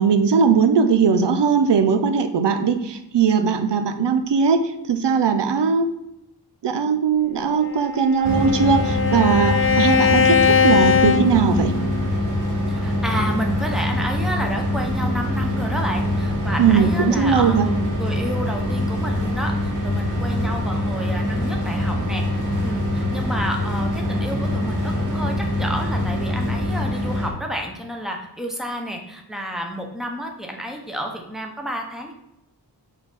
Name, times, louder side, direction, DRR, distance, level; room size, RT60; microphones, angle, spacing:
voice 1, 0.0-4.6 4.9-5.9 6.6-11.7 16.6-17.7, right 6 dB, 85° right, 9 dB, 0.6 m, -19 dB
Bowed string instrument, 7.6-12.1, left 6 dB, 35° left, 0.4 m, -20 dB
sound 1, 8.2-27.3, left 1 dB, 50° right, 1.4 m, -24 dB
voice 2, 12.7-22.2 22.6-32.1, equal, ahead, 2 dB, 0.9 m, -30 dB
5.7 x 4.2 x 4.1 m, 0.83 s
wide cardioid pair, 100°, 41 cm